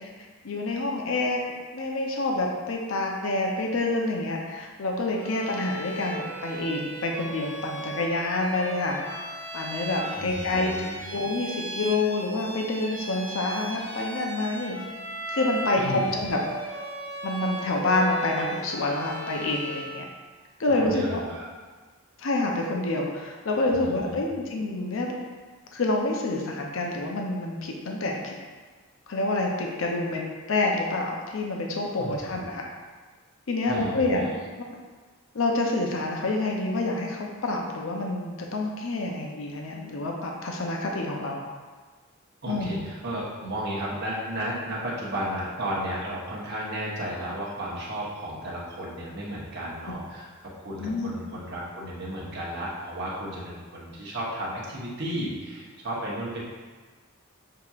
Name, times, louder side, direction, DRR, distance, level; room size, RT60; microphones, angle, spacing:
voice 1, 0.4-1.4 1.7-9.0 9.5-10.7 11.1-14.8 15.3-16.4 17.2-20.0 20.6-21.2 22.2-25.1 25.7-28.3 29.1-30.2 30.5-32.7 33.5-34.2 34.6-34.7 35.3-41.5 42.5-42.8 50.8-51.1, left 2 dB, 65° left, 0 dB, 0.6 m, -27 dB
Bowed string instrument, 5.2-20.0, right 2 dB, 10° left, 1.1 m, -37 dB
voice 2, 10.1-11.0 15.8-16.2 20.7-21.5 23.7-24.2 32.0-32.2 33.7-34.3 42.4-50.3 50.6-56.4, right 1 dB, 50° right, -6 dB, 1.1 m, -33 dB
6.6 x 2.9 x 2.4 m, 1.4 s
head